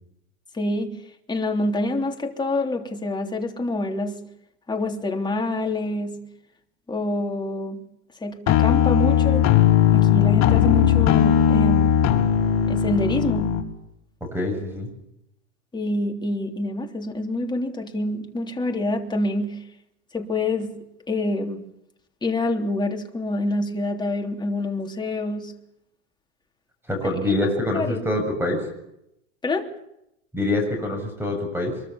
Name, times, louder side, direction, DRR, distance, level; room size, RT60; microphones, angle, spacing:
voice 1, 0.5-1.0 1.3-4.2 4.7-6.2 6.9-7.8 8.2-9.5 9.9-12.0 12.7-13.5 15.7-19.6 20.1-20.8 21.1-21.6 22.2-25.5 27.3-28.0 29.4-29.7, left 2 dB, 10° left, 3.3 m, -26 dB
sound 1, 8.5-13.6, left 9 dB, 45° left, 4.5 m, -18 dB
voice 2, 14.2-14.9 26.9-28.7 30.3-31.8, left 1 dB, 5° right, 7.4 m, -25 dB
24.5 x 23.0 x 7.2 m
supercardioid pair, 125°, 36 cm